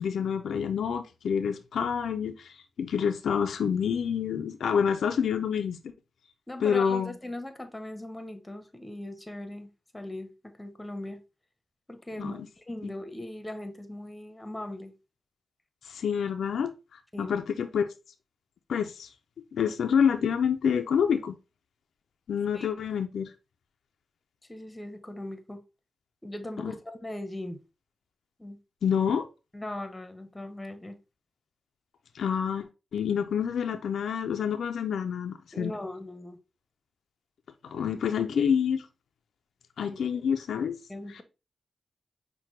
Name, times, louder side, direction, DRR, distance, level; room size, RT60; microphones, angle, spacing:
voice 1, 0.0-5.8 6.6-7.2 12.2-12.5 12.8-12.9 15.8-17.9 18.7-19.1 19.5-21.4 22.3-23.3 26.6-26.7 28.8-29.3 32.1-32.7 32.9-35.7 37.6-38.9 39.8-40.8, left 7 dB, 85° left, 0.3 m, -27 dB
voice 2, 6.5-11.2 11.9-14.9 17.1-17.4 22.5-22.7 24.5-25.6 26.2-27.6 28.4-28.6 29.5-31.0 35.5-36.4 39.9-40.2 40.9-41.2, left 1 dB, 15° left, 0.7 m, -39 dB
5.7 x 2.1 x 3.0 m
cardioid pair, 60°, 0 cm